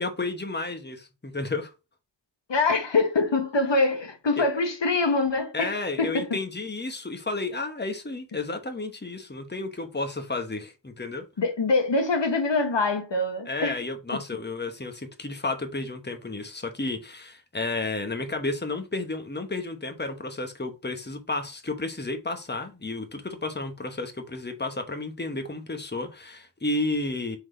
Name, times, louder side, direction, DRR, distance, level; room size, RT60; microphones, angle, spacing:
voice 1, 0.0-1.7 4.4-4.5 5.5-11.2 13.5-27.4, left 2 dB, 25° left, 1.2 m, -32 dB
voice 2, 2.5-6.4 11.4-13.8, left 3 dB, 80° left, 1.1 m, -24 dB
4.9 x 4.0 x 5.1 m
wide cardioid pair, 70°, 43 cm